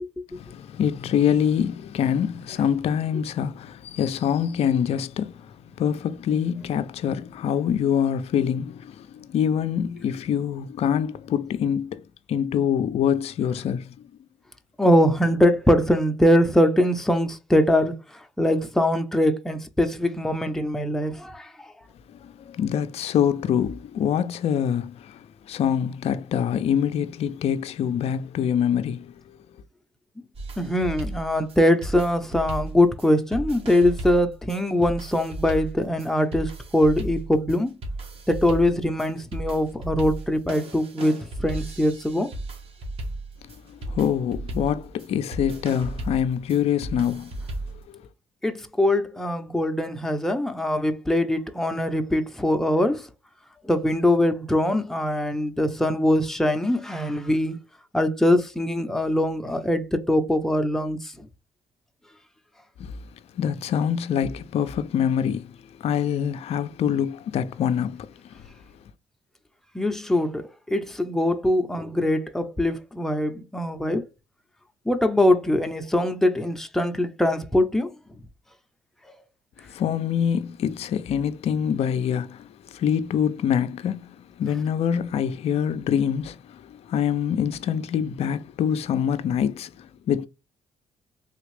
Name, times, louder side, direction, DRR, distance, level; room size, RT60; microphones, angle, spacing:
voice 1, 0.3-14.0 22.1-29.4 43.4-47.3 47.9-48.0 62.8-63.0 63.4-68.5 79.6-90.3, left 8 dB, 55° left, 0.4 m, -25 dB
voice 2, 14.8-21.7 30.6-37.8 38.3-42.3 48.4-53.1 53.6-57.6 57.9-61.3 69.7-74.1 74.9-78.0, left 1 dB, 5° left, 0.6 m, -22 dB
sound 1, 30.3-47.8, right 1 dB, 50° right, 1.4 m, -35 dB
3.5 x 2.4 x 3.2 m
supercardioid pair, 60°, 12 cm